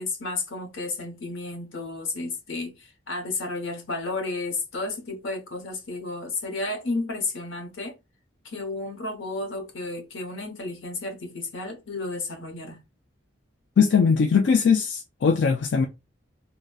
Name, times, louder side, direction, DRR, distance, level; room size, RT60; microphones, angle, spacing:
voice 1, 0.0-8.0 8.4-12.8, left 3 dB, 90° left, 0.9 m, -32 dB
voice 2, 13.8-15.9, left 6 dB, 65° left, 0.4 m, -20 dB
3.9 x 2.1 x 2.3 m
head